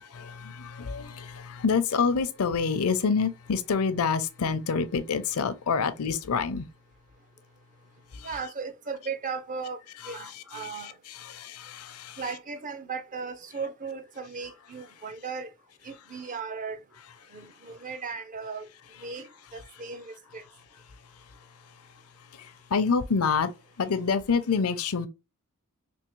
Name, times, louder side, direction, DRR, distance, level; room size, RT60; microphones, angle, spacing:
voice 1, 0.1-6.7 8.1-8.3 10.0-12.2 22.3-23.5 23.8-25.1, left 5 dB, 70° left, 0.5 m, -27 dB
voice 2, 8.2-9.8 10.1-10.9 12.2-15.5 15.8-16.8 17.3-18.7 19.0-19.3 19.5-20.4, right 5 dB, 35° right, 0.5 m, -36 dB
3.5 x 2.7 x 3.0 m
head